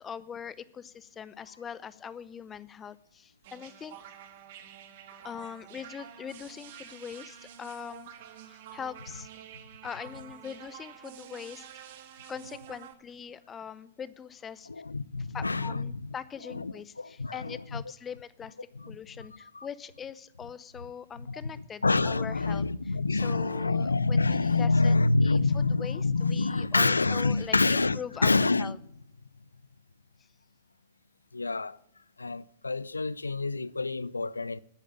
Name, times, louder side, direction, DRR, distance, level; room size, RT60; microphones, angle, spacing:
voice 1, 0.0-4.0 5.2-8.1 8.5-9.3 9.8-11.7 12.3-14.7 15.2-18.6 18.9-24.9 25.2-28.8, left 7 dB, 20° left, 0.7 m, -42 dB
sound 1, 3.4-12.9, right 10 dB, 55° right, 1.5 m, -48 dB
voice 2, 14.7-16.1 16.5-17.8 18.8-19.0 19.5-19.7 21.3-21.4 21.8-28.7 31.3-31.8 32.2-34.6, left 3 dB, 85° left, 0.4 m, -27 dB
10.0 x 10.0 x 7.5 m
figure-of-eight pair, 105°, 0 cm